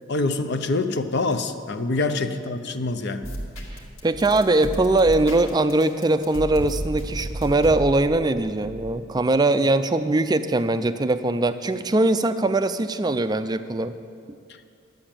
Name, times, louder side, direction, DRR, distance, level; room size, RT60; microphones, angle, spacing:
voice 1, 0.1-3.3, left 3 dB, 55° left, 9 dB, 0.6 m, -25 dB
sound 1, 3.2-9.0, right 1 dB, 85° left, 2.1 m, -34 dB
voice 2, 4.0-13.9, right 2 dB, 20° right, 11 dB, 0.4 m, -21 dB
12.0 x 7.7 x 8.8 m, 2.4 s
head